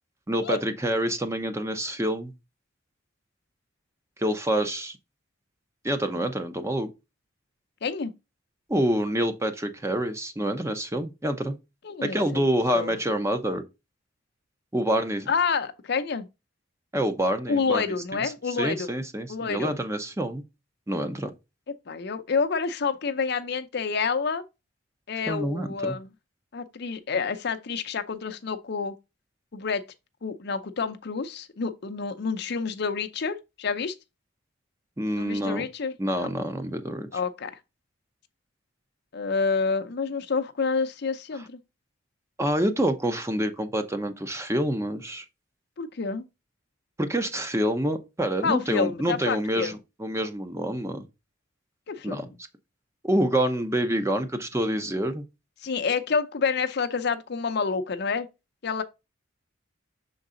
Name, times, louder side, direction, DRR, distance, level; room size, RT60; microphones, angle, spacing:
voice 1, 0.3-2.3 4.2-5.0 5.8-6.9 8.7-11.5 12.0-13.6 14.7-15.3 16.9-17.8 18.1-18.2 18.6-20.4 20.9-21.3 25.3-25.9 35.0-35.7 36.0-37.1 42.4-45.2 47.0-51.1 52.0-52.3 53.0-55.2, right 1 dB, 15° right, 0.7 m, -27 dB
voice 2, 7.8-8.1 11.8-12.2 12.7-12.9 15.3-16.3 17.5-18.9 19.3-19.7 21.9-24.4 25.1-26.1 26.5-29.0 29.5-29.8 30.2-33.9 35.1-36.3 37.1-37.6 39.1-41.6 45.8-46.3 48.4-49.7 51.9-52.4 55.6-58.3 58.6-58.8, left 5 dB, 55° left, 0.6 m, -28 dB
6.5 x 3.9 x 3.8 m
head